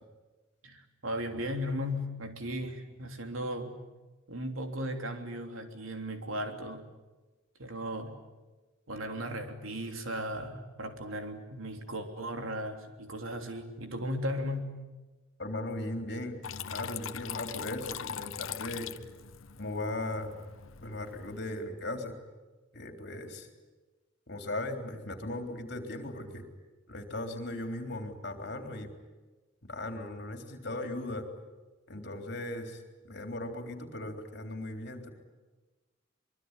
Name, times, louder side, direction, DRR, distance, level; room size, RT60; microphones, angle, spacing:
voice 1, 0.6-3.8 4.3-6.9 7.6-8.2 8.9-14.8, equal, 85° right, 5 dB, 3.3 m, -36 dB
voice 2, 15.4-16.4 16.7-18.9 19.6-20.3 20.8-22.2 22.7-23.5 24.3-26.4 26.9-28.9 29.6-31.3 31.9-35.1, left 1 dB, 55° left, 5 dB, 3.7 m, -38 dB
Water tap faucet / Trickle dribble, 16.4-21.4, left 8 dB, 80° left, 0.9 m, -41 dB
24.0 x 23.0 x 9.9 m, 1.2 s
head